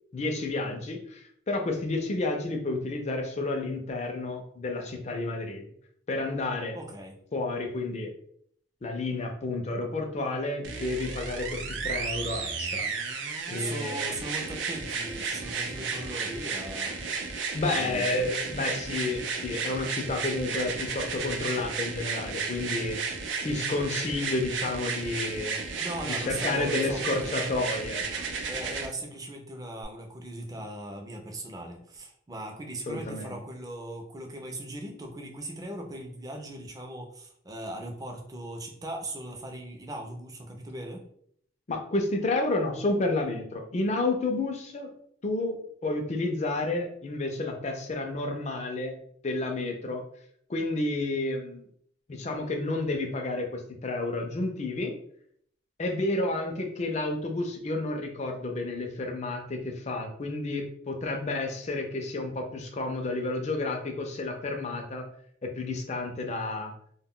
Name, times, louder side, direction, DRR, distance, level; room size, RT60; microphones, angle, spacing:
voice 1, 0.1-5.6 6.1-6.8 7.3-8.1 8.8-13.2 13.5-14.1 17.5-23.0 23.4-25.6 26.2-28.0 32.9-33.3 41.7-44.9 45.2-49.0 49.2-50.0 50.5-51.7 52.1-54.9 55.8-65.0 65.4-66.7, left 2 dB, 35° left, 3 dB, 0.4 m, -31 dB
voice 2, 6.7-7.2 13.2-17.0 17.7-18.2 25.8-27.5 28.4-41.0, right 1 dB, 20° right, 2 dB, 0.4 m, -39 dB
sound 1, 10.6-28.9 29.8-29.9, right 5 dB, 75° right, 0.5 m, -33 dB
2.2 x 2.1 x 3.6 m, 0.65 s
head